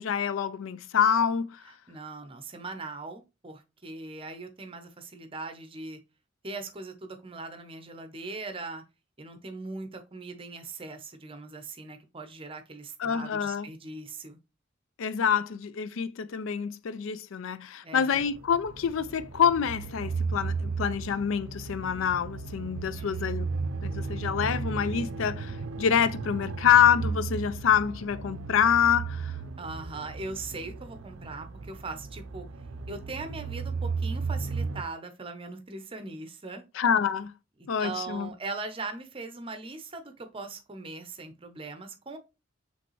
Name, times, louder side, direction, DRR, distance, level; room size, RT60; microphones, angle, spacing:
voice 1, 0.0-1.6 13.0-13.7 15.0-23.5 23.8-29.3 36.8-37.3 37.7-38.3, left 8 dB, 90° left, 0.4 m, -26 dB
voice 2, 1.6-6.0 6.4-8.8 9.2-14.4 17.8-18.2 23.0-23.3 29.6-32.5 32.9-36.6 37.6-42.2, right 3 dB, 30° right, 0.7 m, -40 dB
sound 1, 18.1-34.8, right 4 dB, 80° right, 0.5 m, -35 dB
5.2 x 3.3 x 3.1 m
head